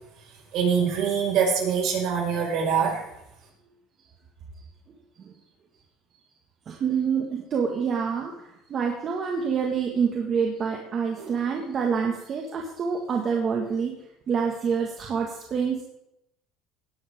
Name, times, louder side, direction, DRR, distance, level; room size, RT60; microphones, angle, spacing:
voice 1, 0.5-3.0, right 6 dB, 60° right, -1 dB, 5.6 m, -24 dB
voice 2, 6.7-13.9 14.3-15.8, right 6 dB, 40° right, 1 dB, 1.9 m, -27 dB
18.0 x 11.0 x 3.8 m, 0.81 s
cardioid pair, 115°, 0 cm